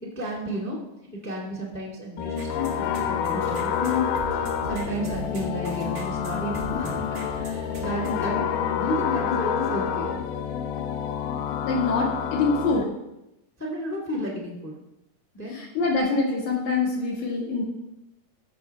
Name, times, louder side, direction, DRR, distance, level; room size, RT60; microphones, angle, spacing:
voice 1, 0.0-0.8 1.1-4.0 4.6-10.2 13.6-14.8 15.3-15.6, left 1 dB, 5° left, -3 dB, 1.2 m, -32 dB
sound 1, 2.2-12.8, left 8 dB, 80° left, 2.2 m, -28 dB
sound 2, 2.4-8.3, right 3 dB, 50° right, 1.1 m, -41 dB
voice 2, 11.6-12.9 15.5-17.6, left 3 dB, 55° left, -2 dB, 3.0 m, -25 dB
15.0 x 6.3 x 3.5 m, 0.89 s
omnidirectional pair, 3.8 m